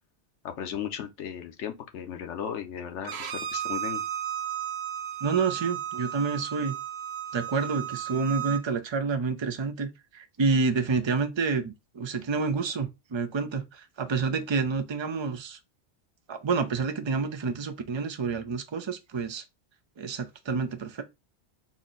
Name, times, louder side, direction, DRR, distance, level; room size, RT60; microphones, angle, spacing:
voice 1, 0.4-4.0, left 8 dB, 85° left, 1.0 m, -36 dB
Bowed string instrument, 3.0-8.6, right 10 dB, 70° right, 0.9 m, -34 dB
voice 2, 5.2-6.7 7.3-15.6 16.3-19.4 20.0-21.0, right 4 dB, 40° right, 0.4 m, -28 dB
4.2 x 2.1 x 3.7 m
omnidirectional pair, 1.2 m